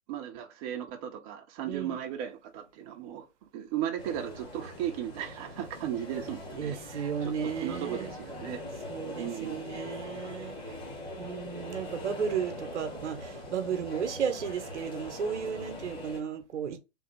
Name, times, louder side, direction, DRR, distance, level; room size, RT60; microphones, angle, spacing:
voice 1, 0.1-3.2 3.5-8.6 9.2-9.6 10.6-10.8, right 10 dB, 30° right, 0.7 m, -36 dB
voice 2, 1.7-2.0 6.5-8.2 8.9-10.5 11.2-16.8, right 7 dB, 75° right, 1.0 m, -34 dB
sound 1, 4.0-16.2, left 1 dB, 15° left, 1.3 m, -42 dB
3.5 x 2.3 x 4.5 m
hypercardioid pair, 130°, 35 cm